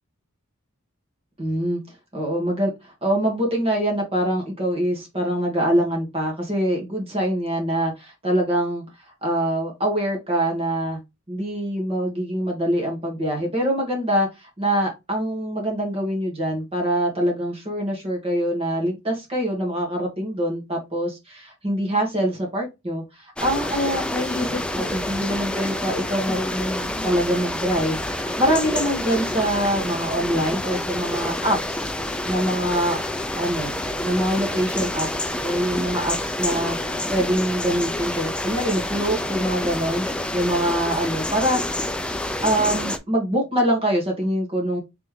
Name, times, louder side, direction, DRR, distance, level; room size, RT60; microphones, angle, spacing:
voice 1, 1.4-1.8 2.1-8.8 9.2-11.0 11.3-31.9 32.3-33.0 33.4-33.7 34.0-41.8 42.4-44.8, right 1 dB, 30° right, 0 dB, 1.4 m, -24 dB
sound 1, 23.4-43.0, left 1 dB, 5° left, 0.4 m, -28 dB
3.6 x 3.2 x 3.2 m, 0.22 s
head